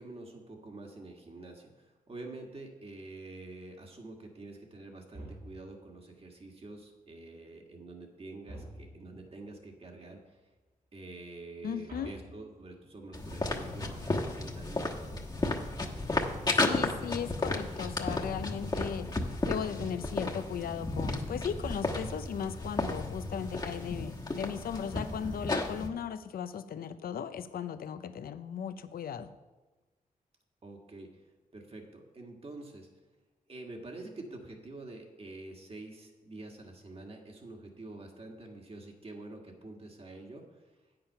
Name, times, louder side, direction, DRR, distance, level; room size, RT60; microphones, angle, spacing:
voice 1, 0.0-10.4 10.9-15.2 30.6-31.2 31.5-32.9 33.5-40.8, right 2 dB, 40° right, 2 dB, 1.8 m, -47 dB
sound 1, 5.1-5.9 8.4-9.3 11.9-13.0 18.0-18.7 21.4-22.2, right 1 dB, 75° right, 2.3 m, -48 dB
voice 2, 11.6-12.1 16.6-29.3, left 8 dB, 85° left, 11 dB, 0.5 m, -37 dB
sound 2, 13.1-25.9, left 2 dB, 30° left, 1.2 m, -33 dB
8.7 x 7.8 x 5.6 m, 1.2 s
cardioid pair, 75°, 15 cm